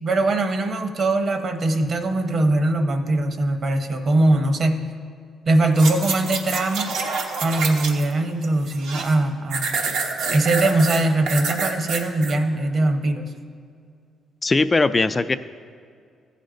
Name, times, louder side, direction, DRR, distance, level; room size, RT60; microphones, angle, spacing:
voice 1, 0.0-4.8 5.5-6.9 7.4-9.8 10.3-13.3, right 2 dB, 50° right, 6 dB, 0.8 m, -21 dB
sound 1, 5.7-8.1 8.4-9.1 9.5-12.3 12.8-12.9, right 4 dB, 85° right, 1.0 m, -27 dB
voice 2, 14.4-15.4, left 3 dB, 25° left, 13 dB, 0.3 m, -19 dB
14.5 x 5.2 x 3.8 m, 2.4 s
cardioid pair, 90°, 0 cm